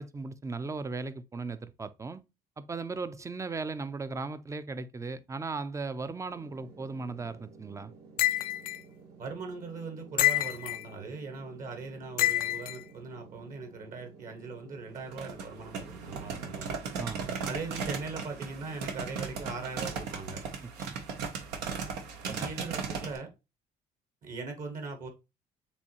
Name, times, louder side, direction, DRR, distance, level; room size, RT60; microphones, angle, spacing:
voice 1, 0.0-2.2 2.6-7.9 17.0-17.3 20.9-21.0 22.3-22.5, right 4 dB, 20° right, 0.5 m, -37 dB
sound 1, 6.3-20.2, right 4 dB, 70° right, 1.9 m, -53 dB
sound 2, 8.2-8.8 10.2-10.8 12.2-12.8, left 15 dB, 60° left, 0.4 m, -27 dB
voice 2, 9.2-16.8 17.4-20.4 22.2-23.3 24.2-25.1, right 4 dB, 55° right, 1.4 m, -40 dB
sound 3, 15.0-23.2, right 5 dB, 90° right, 1.1 m, -37 dB
6.9 x 2.6 x 2.9 m
cardioid pair, 110°, 17 cm